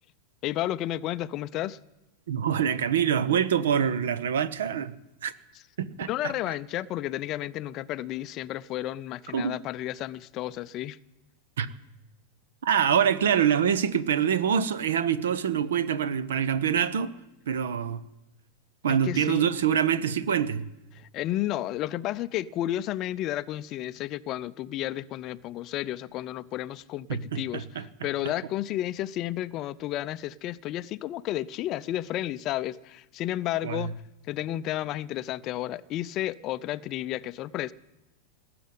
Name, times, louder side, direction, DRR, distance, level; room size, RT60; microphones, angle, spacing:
voice 1, 0.4-1.8 6.1-11.0 18.9-19.5 20.9-34.0 34.3-37.7, left 14 dB, 35° left, 0.5 m, -32 dB
voice 2, 2.3-5.0 5.2-5.3 5.8-6.3 9.3-9.6 11.6-11.7 12.6-17.1 17.5-18.0 18.8-20.7 27.1-27.8 28.2-28.3 33.6-33.9, right 8 dB, 60° right, 0.8 m, -25 dB
19.0 x 7.8 x 9.6 m
figure-of-eight pair, 90°, 0 cm